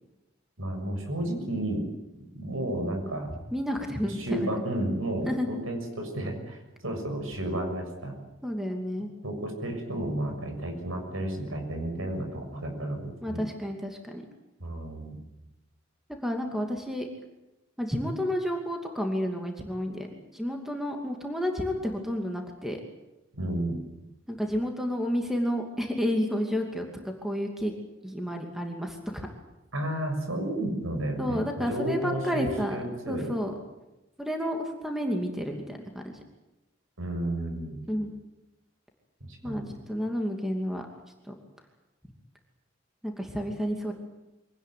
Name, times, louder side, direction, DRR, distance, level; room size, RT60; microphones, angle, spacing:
voice 1, 0.6-1.8 2.3-3.3 4.2-8.2 9.2-13.4 14.6-15.2 23.3-23.8 29.7-33.3 37.0-37.8 39.4-39.7, right 1 dB, 85° right, 4 dB, 6.7 m, -32 dB
voice 2, 3.5-4.5 5.3-5.5 8.4-9.1 13.2-14.2 16.2-17.1 17.8-22.8 24.3-27.7 28.0-29.3 31.2-32.8 33.1-33.5 34.2-36.2 37.9-38.1 39.4-40.9 43.0-43.9, equal, ahead, 2 dB, 2.6 m, -31 dB
24.5 x 18.5 x 9.4 m, 0.97 s
head